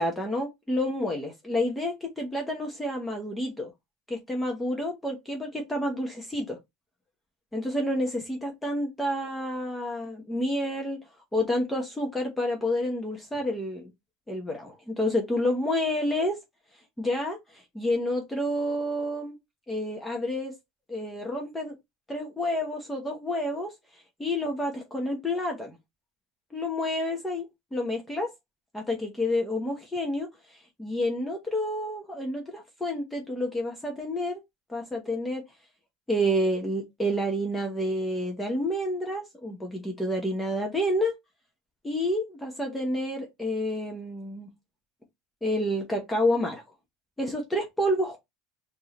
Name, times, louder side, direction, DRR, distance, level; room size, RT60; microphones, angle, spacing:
voice 1, 0.0-3.7 4.1-6.6 7.5-11.0 11.3-13.9 14.3-16.4 17.0-19.4 19.7-20.5 20.9-21.8 22.1-25.8 26.5-27.5 27.7-28.3 28.7-34.4 34.7-35.4 36.1-41.1 41.8-44.5 45.4-46.6 47.2-48.2, left 1 dB, 10° left, 1.0 m, -29 dB
4.6 x 2.7 x 3.0 m
supercardioid pair, 125°, 0 cm